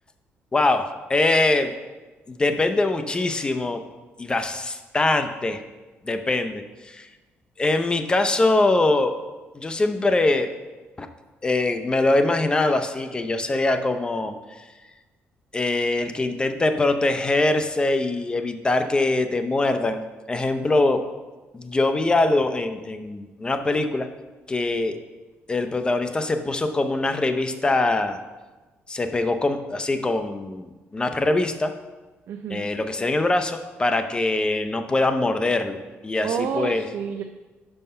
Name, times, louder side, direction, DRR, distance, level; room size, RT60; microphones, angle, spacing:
voice 1, 0.5-1.7 2.3-3.8 4.2-5.6 6.0-7.1 7.6-9.2 9.5-10.5 11.0-11.1 11.4-14.3 15.5-20.0 20.3-21.1 21.5-24.1 24.5-24.9 25.5-28.2 28.9-31.7 32.5-35.8 36.0-36.8, left 2 dB, 20° left, 8 dB, 0.5 m, -23 dB
voice 2, 32.3-32.7 36.2-37.2, right 7 dB, 65° right, 6 dB, 0.4 m, -29 dB
5.6 x 5.4 x 5.5 m, 1.2 s
cardioid pair, 120°, 5 cm